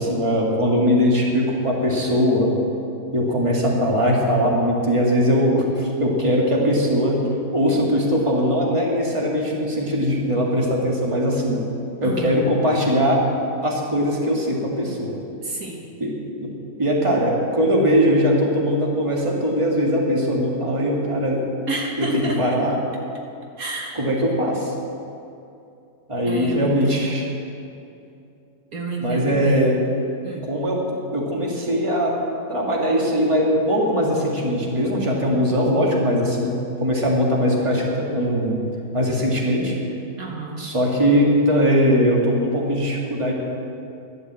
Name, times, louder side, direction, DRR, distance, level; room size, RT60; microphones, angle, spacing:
voice 1, 0.0-2.5 3.1-7.2 7.5-11.6 12.0-13.3 13.6-15.2 16.0-16.1 16.4-16.5 16.8-21.4 22.0-22.8 24.0-24.7 26.1-27.2 29.0-29.8 30.4-32.2 32.5-38.6 38.9-39.7 40.6-43.3, equal, 20° right, -2 dB, 2.0 m, -20 dB
voice 2, 12.0-12.4 15.4-15.8 21.7-22.6 23.6-24.0 26.3-27.2 28.7-29.8 30.2-30.5 40.2-40.7, right 2 dB, 70° right, 0 dB, 1.8 m, -30 dB
12.0 x 10.0 x 7.5 m, 2.6 s
omnidirectional pair, 1.6 m